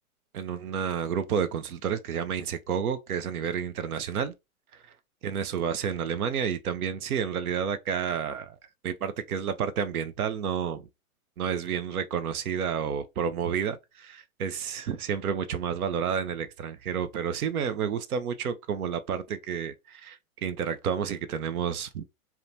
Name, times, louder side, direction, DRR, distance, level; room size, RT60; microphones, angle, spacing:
voice 1, 0.3-4.3 5.2-8.6 8.8-10.9 11.4-22.0, right 7 dB, 85° right, 0.5 m, -30 dB
2.8 x 2.2 x 2.5 m
hypercardioid pair, 125°, 43 cm